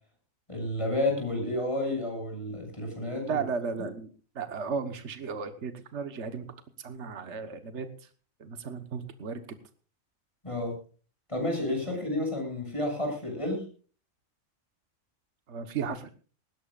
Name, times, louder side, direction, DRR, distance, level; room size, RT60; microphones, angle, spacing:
voice 1, 0.5-3.4 10.4-10.7 11.3-13.6, left 1 dB, 25° left, 2 dB, 7.1 m, -30 dB
voice 2, 3.2-4.1 4.3-6.5 6.8-7.9 8.4-9.4 11.9-12.0 15.5-16.1, right 5 dB, 60° right, 9 dB, 1.6 m, -34 dB
20.0 x 17.0 x 2.5 m, 0.38 s
omnidirectional pair, 1.3 m